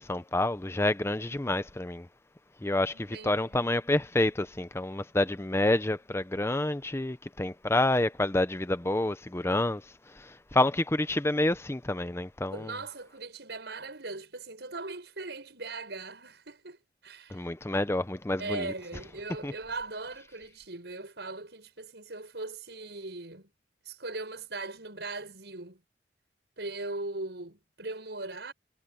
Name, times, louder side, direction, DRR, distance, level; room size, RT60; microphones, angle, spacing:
voice 1, 0.0-2.1 2.6-9.8 10.1-12.7 17.3-18.7 19.4-19.5, left 1 dB, 15° left, 0.7 m, -28 dB
voice 2, 2.9-3.7 12.5-16.8 17.0-17.5 18.4-23.5 23.8-25.8 26.6-28.5, right 3 dB, 75° right, 7.6 m, -39 dB
head